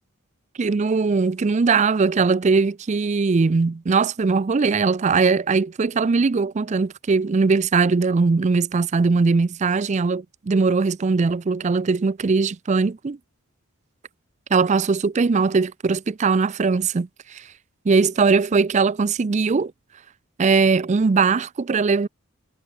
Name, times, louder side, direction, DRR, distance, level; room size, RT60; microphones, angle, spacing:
voice 1, 0.6-13.2 14.5-17.4 17.9-19.7 20.4-22.1, right 4 dB, 35° right, 0.4 m, -20 dB
head